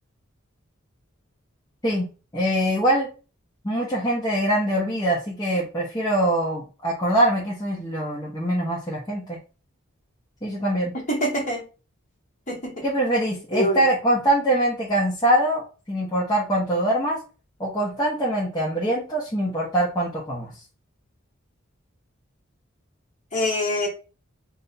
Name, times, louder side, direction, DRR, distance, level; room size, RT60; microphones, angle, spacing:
voice 1, 2.3-3.1 3.6-9.4 10.4-10.9 12.8-15.6 15.9-17.2 17.6-20.5, right 1 dB, 20° left, -6 dB, 0.9 m, -23 dB
voice 2, 11.1-11.6 12.5-12.7 13.5-13.8 23.3-23.9, equal, 35° left, -2 dB, 1.4 m, -24 dB
3.4 x 2.7 x 4.0 m, 0.33 s
head